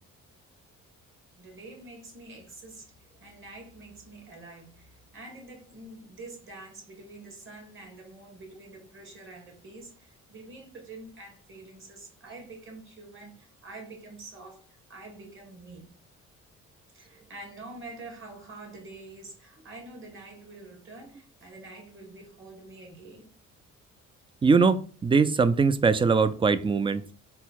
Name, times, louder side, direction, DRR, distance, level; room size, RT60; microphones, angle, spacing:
voice 1, 1.4-2.9 3.2-15.9 16.9-23.3, right 2 dB, 40° right, 1.9 m, -46 dB
voice 2, 24.4-27.0, right 4 dB, 20° right, 0.3 m, -22 dB
4.0 x 2.2 x 4.1 m
cardioid pair, 90°, 30 cm